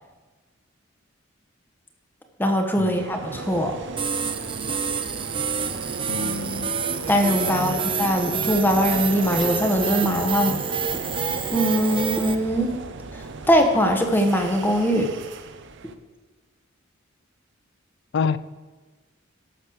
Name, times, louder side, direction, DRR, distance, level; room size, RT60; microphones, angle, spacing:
voice 1, 2.4-3.7 7.1-10.6 11.5-12.7 13.5-15.1, equal, 10° left, 4 dB, 1.2 m, -21 dB
sound 1, 2.9-15.9, right 4 dB, 65° right, 0.7 m, -35 dB
sound 2, 4.0-12.4, right 6 dB, 25° right, 0.7 m, -28 dB
voice 2, 6.1-6.7 7.5-7.9 18.1-18.4, left 5 dB, 60° left, 17 dB, 0.4 m, -28 dB
12.0 x 6.4 x 6.4 m, 1.3 s
head